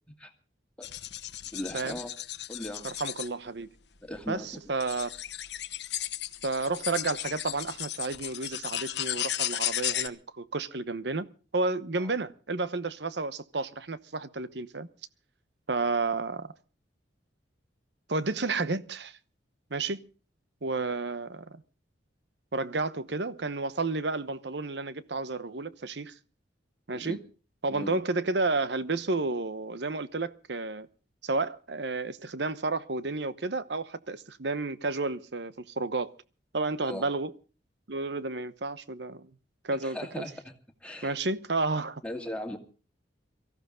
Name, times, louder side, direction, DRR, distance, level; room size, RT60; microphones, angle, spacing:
sound 1, 0.8-3.3 4.1-4.2 4.8-10.1, left 13 dB, 65° left, 1.1 m, -35 dB
voice 1, 1.5-2.1 2.5-2.9 4.0-4.5 12.0-12.1 26.9-27.2 27.7-28.0 36.8-37.1 39.8-40.5 40.8-41.1 42.0-42.6, left 1 dB, 5° left, 2.3 m, -38 dB
voice 2, 2.8-3.7 4.3-4.4 4.7-5.1 6.4-11.3 11.5-14.9 15.7-16.5 18.1-19.2 19.7-20.1 20.6-21.6 22.5-26.1 26.9-27.2 27.6-30.9 31.2-36.1 36.5-37.3 37.9-39.3 39.6-40.0 41.0-42.0, right 3 dB, 65° right, 1.0 m, -31 dB
23.5 x 15.0 x 3.8 m
head